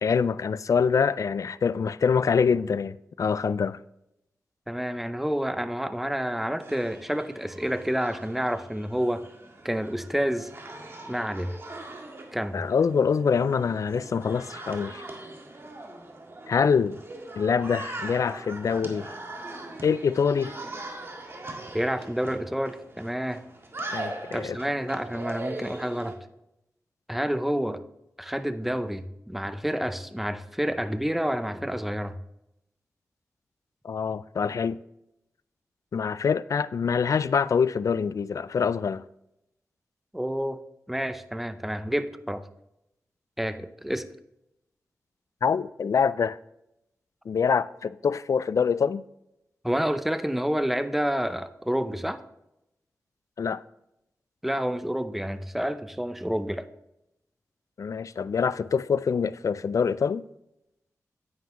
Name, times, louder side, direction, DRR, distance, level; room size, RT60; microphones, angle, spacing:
voice 1, 0.0-3.8 12.5-15.0 16.5-17.0 17.4-19.1 19.8-20.5 23.9-24.6 33.8-34.8 35.9-39.0 45.4-46.4 47.3-49.0 53.4-53.6 57.8-60.2, left 6 dB, 65° left, 0.3 m, -25 dB
voice 2, 4.7-9.2 9.6-10.5 11.1-11.6 12.3-12.6 21.7-23.4 24.3-26.2 27.1-27.8 28.2-32.2 40.1-40.6 40.9-42.4 43.4-44.1 49.6-52.2 54.4-56.7, equal, 5° right, 0.6 m, -29 dB
sound 1, 6.6-26.2, right 2 dB, 45° right, 1.7 m, -41 dB
9.4 x 9.3 x 3.0 m
wide cardioid pair, 75°, 6 cm